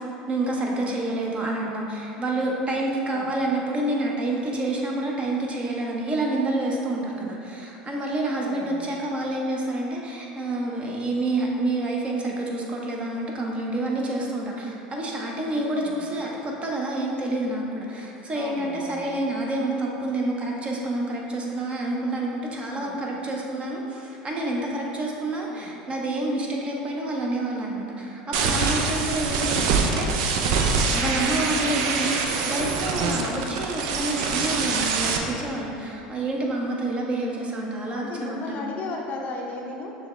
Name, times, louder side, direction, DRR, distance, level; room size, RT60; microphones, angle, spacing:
voice 1, 0.0-30.1 30.9-38.7, right 2 dB, 30° right, -1 dB, 0.7 m, -28 dB
voice 2, 8.4-8.9 15.5-16.0 18.3-19.1 22.7-23.0 25.5-25.7 31.4-31.7 37.9-39.9, left 3 dB, 45° left, 0 dB, 0.5 m, -36 dB
sound 1, 28.3-35.2, right 4 dB, 70° right, 0.4 m, -24 dB
6.3 x 2.3 x 3.1 m, 2.7 s
hypercardioid pair, 85°, 4 cm